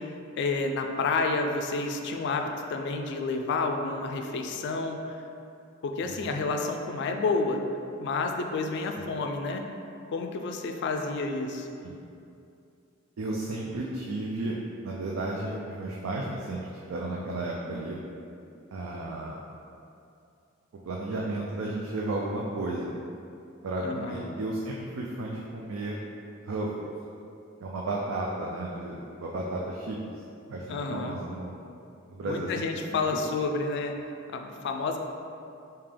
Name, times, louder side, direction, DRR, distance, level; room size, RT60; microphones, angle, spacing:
voice 1, 0.0-5.2 5.8-7.6 8.0-9.6 10.1-11.7 23.8-24.3 30.7-31.2 32.2-34.0 34.3-35.0, left 3 dB, 60° left, 4 dB, 0.3 m, -30 dB
voice 2, 6.0-6.4 9.0-9.1 11.8-11.9 13.2-14.6 14.8-18.0 18.7-19.4 20.8-23.0 23.6-26.0 26.4-26.9 27.6-30.0 30.5-31.5 32.1-33.0, right 2 dB, 90° right, -3 dB, 0.4 m, -33 dB
3.6 x 2.8 x 3.3 m, 2.5 s
head